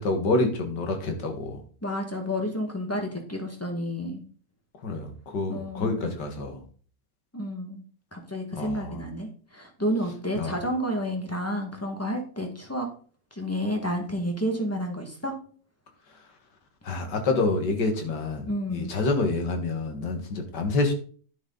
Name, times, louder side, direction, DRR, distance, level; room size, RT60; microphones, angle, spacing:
voice 1, 0.0-1.6 4.8-6.6 8.5-9.0 10.3-10.5 16.8-20.9, left 3 dB, 70° left, 5 dB, 2.3 m, -27 dB
voice 2, 1.8-4.2 5.5-6.1 7.3-7.8 8.1-12.9 13.3-15.4 18.4-18.9, equal, 10° left, 3 dB, 1.6 m, -30 dB
10.5 x 6.4 x 4.0 m, 0.44 s
omnidirectional pair, 1.9 m